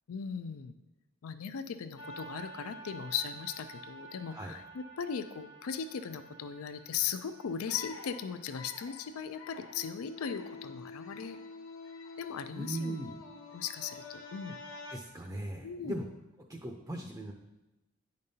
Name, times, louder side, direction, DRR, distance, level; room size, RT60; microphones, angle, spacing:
voice 1, 0.1-0.8 1.2-11.4 12.2-13.0 13.5-14.6 15.6-16.0, left 7 dB, 85° left, 11 dB, 0.4 m, -38 dB
sound 1, 2.0-15.0, left 2 dB, 65° left, 0.9 m, -48 dB
voice 2, 12.5-13.1 14.9-16.1 16.5-17.3, right 1 dB, 15° right, 2 dB, 0.5 m, -39 dB
9.4 x 5.2 x 2.7 m, 1.0 s
head